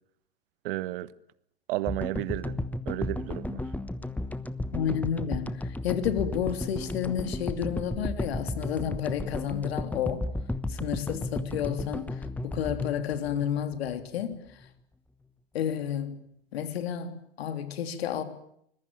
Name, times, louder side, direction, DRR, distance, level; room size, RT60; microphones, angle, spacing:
voice 1, 0.6-1.1 1.7-2.6 2.8-3.6, right 17 dB, 60° right, 1.4 m, -32 dB
sound 1, 1.9-14.2, left 2 dB, 5° left, 1.1 m, -34 dB
voice 2, 4.7-10.2 10.7-14.7 15.5-16.2 16.5-18.2, left 9 dB, 70° left, 3.4 m, -31 dB
25.5 x 21.5 x 9.1 m
hypercardioid pair, 105°, 32 cm